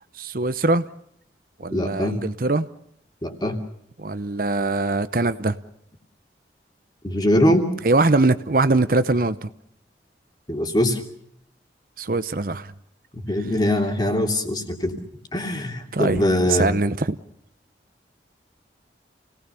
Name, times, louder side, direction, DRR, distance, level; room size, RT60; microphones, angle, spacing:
voice 1, 0.1-0.8 1.6-2.7 4.0-5.6 7.8-9.5 12.0-12.7 15.9-17.2, right 2 dB, 50° right, 12 dB, 0.8 m, -22 dB
voice 2, 1.7-2.2 3.2-3.6 7.0-7.7 10.5-11.0 13.1-15.0 15.3-16.7, left 1 dB, 25° left, 4 dB, 2.9 m, -22 dB
29.0 x 18.5 x 6.9 m, 0.72 s
head